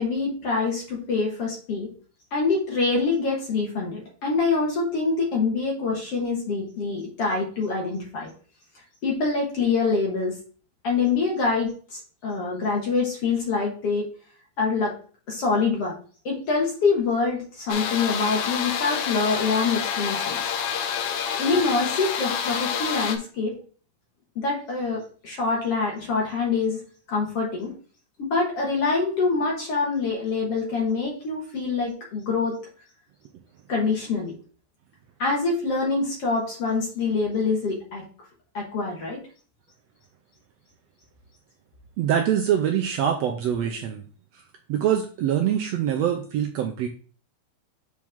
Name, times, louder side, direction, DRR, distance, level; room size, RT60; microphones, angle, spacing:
voice 1, 0.0-1.9 2.3-8.3 9.0-10.4 10.8-14.1 14.6-14.9 15.3-15.9 16.2-20.4 21.4-23.6 24.4-26.8 27.1-27.7 28.2-32.6 33.7-34.4 35.2-38.0 38.5-39.2, left 4 dB, 55° left, -2 dB, 2.4 m, -25 dB
sound 1, 17.7-23.2, left 7 dB, 70° left, 2.1 m, -28 dB
voice 2, 42.0-44.0 44.7-46.9, right 9 dB, 75° right, 3 dB, 1.5 m, -24 dB
7.4 x 4.6 x 3.6 m, 0.40 s
omnidirectional pair, 3.6 m